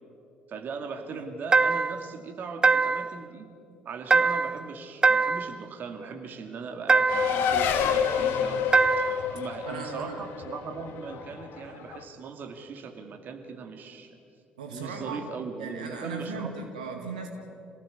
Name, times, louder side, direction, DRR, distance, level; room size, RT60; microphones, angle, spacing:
voice 1, 0.5-3.5 3.8-8.7 9.3-14.2 14.7-16.9, right 4 dB, 50° right, 5 dB, 2.4 m, -39 dB
sound 1, 1.5-2.1 2.6-3.2 4.1-4.6 5.0-5.6 6.9-7.4 8.7-9.3, right 4 dB, 20° right, 0.5 m, -22 dB
Race car auto racing, 7.1-12.0, left 8 dB, 60° left, 1.8 m, -28 dB
voice 2, 9.7-10.2 14.6-15.3 15.6-17.3, right 5 dB, 80° right, 4 dB, 2.1 m, -37 dB
26.0 x 17.5 x 8.3 m, 2.5 s
hypercardioid pair, 55°, 4 cm